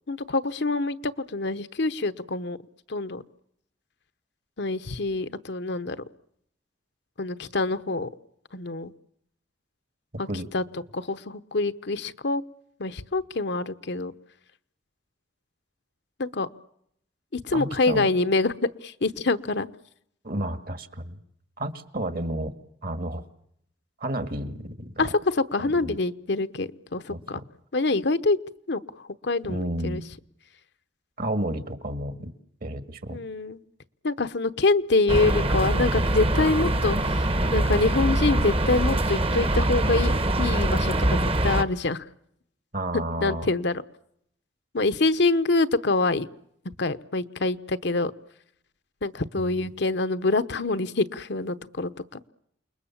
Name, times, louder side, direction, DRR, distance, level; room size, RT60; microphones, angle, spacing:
voice 1, 0.1-2.6 2.9-3.2 4.6-6.0 7.2-8.1 8.5-8.9 10.2-10.3 10.5-10.6 10.9-12.4 12.8-14.1 16.2-16.5 17.3-19.7 25.0-27.4 27.7-28.4 28.7-30.0 33.1-33.6 34.0-37.2 37.5-42.0 42.9-43.8 44.7-46.3 46.8-48.1 49.0-52.3, left 3 dB, 65° left, 12 dB, 0.9 m, -26 dB
voice 2, 17.5-18.1 20.2-21.2 21.6-22.5 22.8-23.2 24.0-25.1 25.8-26.0 27.1-27.4 29.5-30.0 31.2-32.3 32.6-33.2 42.7-43.5 49.4-49.7, right 1 dB, 55° right, 10 dB, 1.9 m, -31 dB
sound 1, 35.1-41.6, right 1 dB, 30° right, 1.1 m, -23 dB
29.0 x 21.0 x 7.3 m, 0.73 s
head